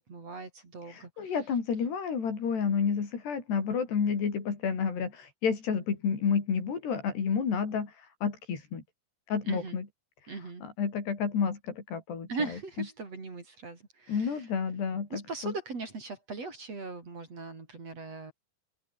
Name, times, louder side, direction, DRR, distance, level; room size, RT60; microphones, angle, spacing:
voice 1, 0.0-1.3 9.4-9.8 10.3-10.6 12.3-14.5 15.1-18.3, right 3 dB, 35° right, 5.2 m, -39 dB
voice 2, 0.9-7.9 8.2-8.8 9.3-9.9 10.6-12.3 14.1-15.5, left 6 dB, 70° left, 6.6 m, -30 dB
open air
omnidirectional pair, 5.1 m